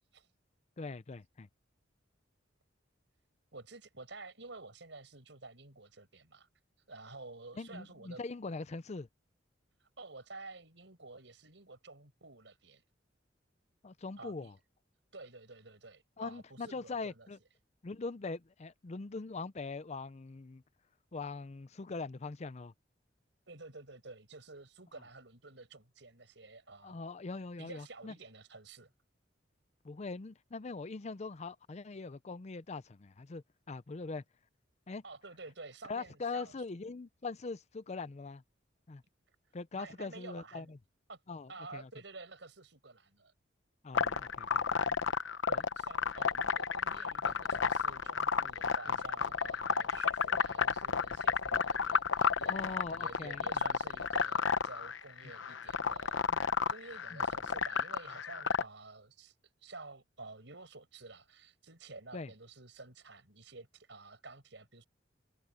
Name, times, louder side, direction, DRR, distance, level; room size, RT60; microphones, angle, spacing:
voice 1, 0.8-1.5 7.6-9.1 13.8-14.5 16.2-17.4 17.8-20.6 21.1-22.7 26.8-28.1 29.8-34.2 34.9-35.0 35.9-38.4 38.9-39.0 39.5-40.8 41.3-41.9 43.8-45.0 45.5-45.6 48.9-49.0 52.5-53.4 56.3-56.4 57.1-57.2 62.1-62.3, left 3 dB, 35° left, 0.5 m, -42 dB
voice 2, 3.5-6.5 6.9-8.2 9.8-12.8 14.2-14.5 15.1-17.3 23.5-27.0 27.6-28.9 35.0-36.6 39.7-40.7 41.1-41.2 41.5-43.3 45.5-56.3 56.7-59.3 59.6-64.8, right 3 dB, 70° right, 6.0 m, -51 dB
sound 1, 43.9-58.6, left 6 dB, 90° left, 0.9 m, -32 dB
head